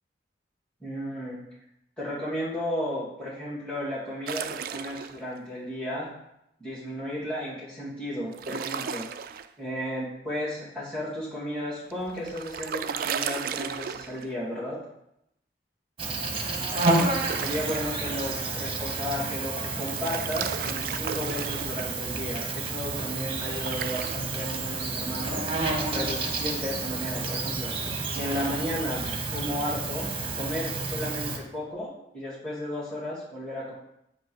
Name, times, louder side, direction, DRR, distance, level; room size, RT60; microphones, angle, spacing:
voice 1, 0.8-1.4 2.0-6.1 6.6-9.1 9.6-14.8 17.4-27.7 28.1-30.1 30.4-33.7, equal, 5° left, -10 dB, 2.2 m, -34 dB
sound 1, 4.3-5.2 8.3-9.5 11.9-14.3 16.5-17.9 19.8-21.8 23.4-24.2, right 7 dB, 55° right, 0.3 m, -34 dB
Insect, 16.0-31.4, right 3 dB, 30° right, 0.9 m, -30 dB
8.1 x 3.1 x 6.3 m, 0.81 s
head